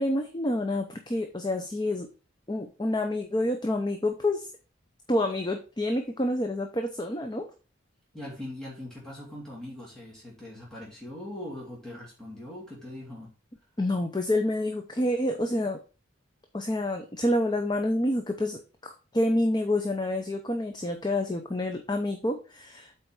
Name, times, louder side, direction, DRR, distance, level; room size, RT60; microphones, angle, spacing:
voice 1, 0.0-2.1 2.5-4.5 5.1-7.5 13.8-15.8 16.5-22.9, left 1 dB, 20° left, 5 dB, 0.6 m, -28 dB
voice 2, 8.1-13.3, left 1 dB, 5° left, -6 dB, 2.5 m, -41 dB
8.0 x 4.3 x 4.7 m, 0.33 s
head